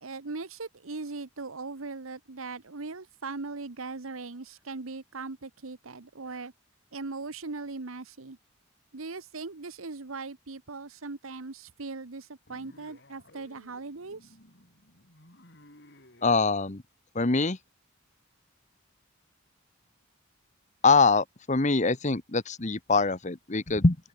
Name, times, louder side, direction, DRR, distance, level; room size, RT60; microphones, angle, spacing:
voice 1, 0.0-6.5 6.9-8.4 8.9-14.2, right 3 dB, 85° right, 1.2 m, -39 dB
sound 1, 12.5-16.4, left 1 dB, 55° left, 7.5 m, -56 dB
voice 2, 16.2-16.8 17.1-17.6 20.8-24.0, left 3 dB, 35° left, 1.1 m, -24 dB
open air
head